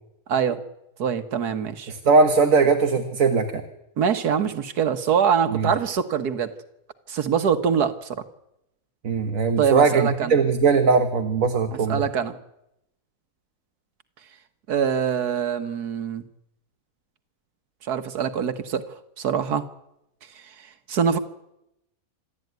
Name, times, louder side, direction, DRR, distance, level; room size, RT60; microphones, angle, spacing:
voice 1, 0.3-0.6 1.0-1.9 4.0-6.5 7.1-8.2 9.6-10.3 11.7-12.4 14.7-16.3 17.8-19.7 20.4-21.2, right 7 dB, 90° right, 9 dB, 1.8 m, -24 dB
voice 2, 1.9-3.6 5.5-5.7 9.0-12.0, right 4 dB, 60° right, 6 dB, 1.8 m, -20 dB
26.5 x 13.5 x 9.4 m, 0.85 s
omnidirectional pair, 1.6 m